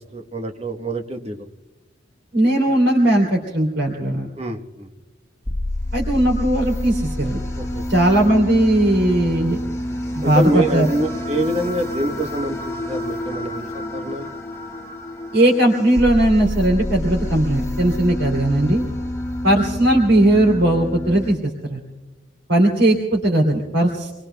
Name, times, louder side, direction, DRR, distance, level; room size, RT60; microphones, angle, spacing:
voice 1, 0.1-1.4 4.4-4.9 7.6-7.8 10.2-14.3, right 1 dB, 35° right, 4 dB, 1.1 m, -25 dB
voice 2, 2.3-4.3 5.9-7.4 7.9-9.6 10.1-10.9 15.3-18.8 19.4-21.8 22.5-24.1, right 1 dB, 90° right, 0 dB, 2.9 m, -18 dB
sound 1, 5.4-21.3, left 1 dB, 15° left, 1.4 m, -28 dB
27.5 x 22.0 x 2.2 m, 1.2 s
head